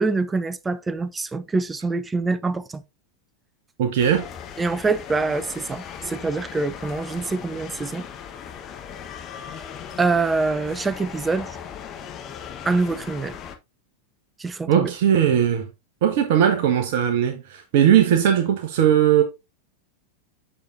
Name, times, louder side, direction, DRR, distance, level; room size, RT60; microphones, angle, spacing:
voice 1, 0.0-2.8 4.6-8.1 10.0-11.5 12.6-13.4 14.4-14.9, right 3 dB, 15° right, 0.6 m, -25 dB
voice 2, 3.8-4.3 14.7-15.7 16.0-19.2, right 9 dB, 50° right, 1.1 m, -19 dB
sound 1, 4.0-13.6, left 8 dB, 30° left, 1.1 m, -38 dB
8.6 x 6.6 x 2.6 m
figure-of-eight pair, 90°, 0 cm